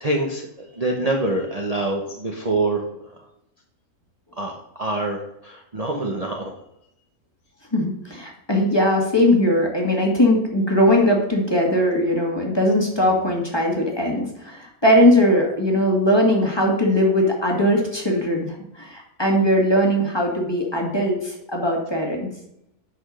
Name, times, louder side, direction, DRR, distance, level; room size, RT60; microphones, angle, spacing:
voice 1, 0.0-3.2 4.4-4.5 4.8-6.6, right 2 dB, 30° right, 1 dB, 1.0 m, -25 dB
voice 2, 7.7-22.3, left 1 dB, 15° left, -1 dB, 2.0 m, -20 dB
8.7 x 6.2 x 6.4 m, 0.79 s
omnidirectional pair, 1.6 m